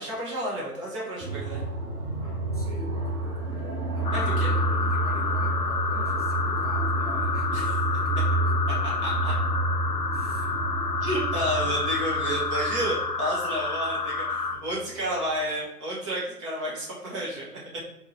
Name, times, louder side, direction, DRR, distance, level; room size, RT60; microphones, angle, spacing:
voice 1, 0.0-1.6 4.1-4.5 7.5-7.8 9.0-9.3 11.0-17.5, right 1 dB, 20° right, -5 dB, 0.9 m, -31 dB
sound 1, 1.2-14.9, right 2 dB, 65° right, 1.0 m, -29 dB
voice 2, 2.2-3.3 3.9-7.6 10.1-10.6 11.5-11.8, equal, 25° left, -3 dB, 0.4 m, -43 dB
sound 2, 4.0-14.6, left 4 dB, 80° left, 0.7 m, -29 dB
3.6 x 2.6 x 3.1 m, 0.89 s
figure-of-eight pair, 130°, 47 cm